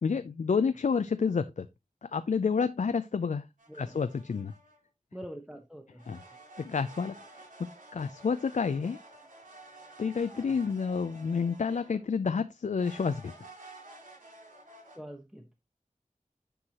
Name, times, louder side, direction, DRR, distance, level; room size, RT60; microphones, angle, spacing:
voice 1, 0.0-1.7 2.1-3.4 3.8-4.5 6.1-6.2 6.6-7.1 7.6-9.0 10.0-13.3, left 5 dB, 65° left, 0.4 m, -29 dB
sound 1, 3.6-4.8 6.0-12.1 12.8-15.0, right 2 dB, 80° right, 3.6 m, -51 dB
voice 2, 3.7-4.0 5.1-6.1 14.9-15.5, equal, 5° right, 1.0 m, -44 dB
9.8 x 4.7 x 2.9 m
wide cardioid pair, 65°, 13 cm